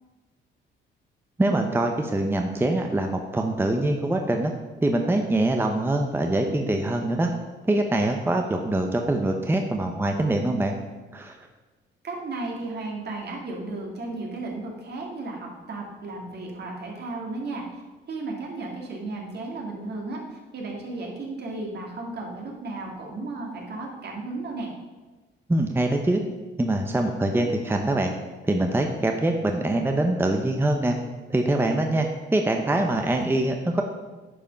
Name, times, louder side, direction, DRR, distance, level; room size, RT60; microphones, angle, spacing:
voice 1, 1.4-4.5 4.8-7.3 7.7-10.7 11.1-11.4 25.5-26.2 26.6-28.1 28.4-30.9 31.3-33.8, right 1 dB, 10° right, 3 dB, 0.8 m, -24 dB
voice 2, 12.0-17.8 18.1-24.7, right 2 dB, 55° right, -1 dB, 2.4 m, -34 dB
9.9 x 5.2 x 5.3 m, 1.3 s
cardioid pair, 90°, 20 cm